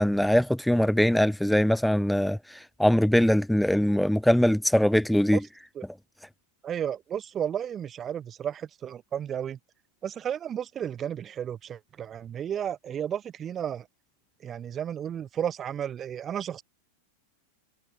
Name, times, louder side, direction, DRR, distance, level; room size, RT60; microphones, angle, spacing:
voice 1, 0.0-5.4, equal, ahead, 0.9 m, -22 dB
voice 2, 6.6-9.6 10.0-13.9 14.4-16.6, right 9 dB, 25° right, 1.0 m, -33 dB
figure-of-eight pair, 90°, 0 cm